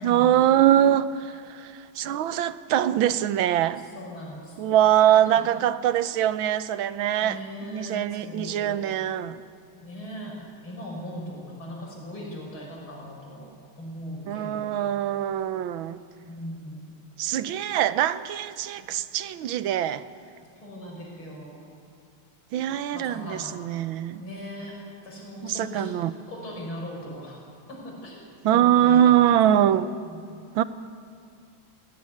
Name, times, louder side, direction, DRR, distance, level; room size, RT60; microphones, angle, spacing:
voice 1, 0.0-3.8 4.6-7.4 7.7-9.4 14.3-16.0 17.2-20.0 22.5-24.2 25.4-26.1 28.4-29.9 30.5-30.6, right 11 dB, 80° right, 14 dB, 1.5 m, -23 dB
voice 2, 3.8-4.7 5.1-5.5 7.2-8.8 9.7-13.5 13.8-14.8 16.2-16.9 18.8-18.9 20.6-21.6 22.9-23.7 24.2-25.9 26.3-27.4 27.7-29.3 29.6-29.7 30.0-30.2, equal, 80° left, -2 dB, 6.3 m, -39 dB
19.0 x 18.5 x 9.6 m, 2.3 s
omnidirectional pair, 2.2 m